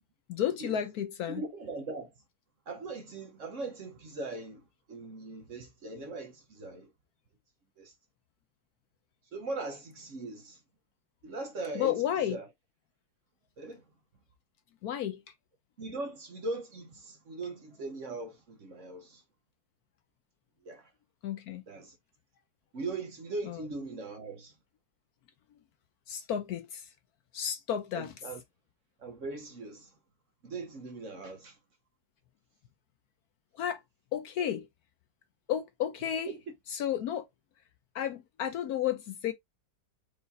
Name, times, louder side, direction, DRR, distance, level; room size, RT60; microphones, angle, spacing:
voice 1, 0.3-1.4 11.7-12.4 14.8-15.2 21.2-21.6 23.5-23.6 26.1-26.9 27.3-28.1 33.6-33.8 34.1-34.7 35.5-36.3 36.7-37.2 37.9-39.3, left 10 dB, 70° left, 1.0 m, -32 dB
voice 2, 1.3-2.1 2.7-6.9 7.8-7.9 9.3-10.6 11.2-12.0 12.3-12.5 13.6-13.8 15.8-19.2 20.6-20.9 21.7-22.0 22.7-24.5 27.9-28.4 29.0-29.9 30.4-31.6 36.2-36.4, right 3 dB, 50° right, 1.2 m, -40 dB
4.7 x 2.7 x 4.1 m
omnidirectional pair, 1.9 m